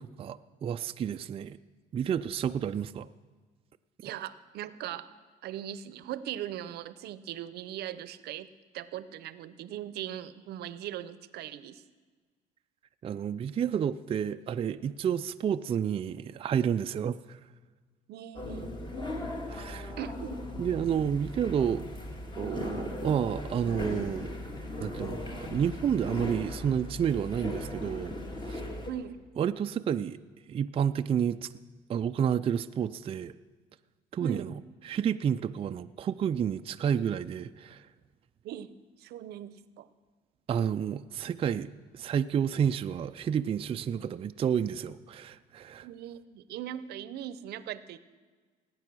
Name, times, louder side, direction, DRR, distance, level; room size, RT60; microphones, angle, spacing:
voice 1, 0.2-1.6 1.9-3.1 13.0-17.4 19.5-19.9 20.6-21.8 22.4-24.3 24.8-28.2 28.5-28.6 29.4-30.2 30.5-31.5 31.9-33.3 34.1-34.5 34.8-37.9 40.5-41.7 41.9-45.9, right 8 dB, 35° right, 9 dB, 0.4 m, -30 dB
voice 2, 4.0-5.1 5.4-11.8 18.1-18.8 20.0-20.4 28.9-29.2 34.2-34.5 38.4-39.9 45.8-48.0, right 11 dB, 75° right, 15 dB, 0.7 m, -39 dB
sound 1, 18.3-28.9, left 1 dB, 25° left, 2.1 m, -38 dB
18.5 x 9.0 x 6.1 m, 1.5 s
cardioid pair, 110°, 17 cm